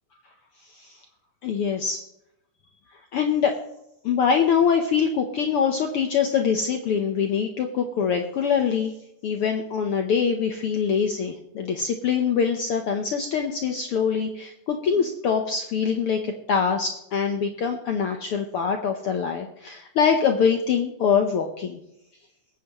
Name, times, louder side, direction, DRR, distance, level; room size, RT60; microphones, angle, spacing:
voice 1, 1.4-2.0 3.1-3.5 4.0-8.9 9.2-21.8, left 6 dB, 65° left, 4 dB, 1.4 m, -24 dB
21.0 x 9.2 x 3.0 m, 0.82 s
omnidirectional pair, 3.6 m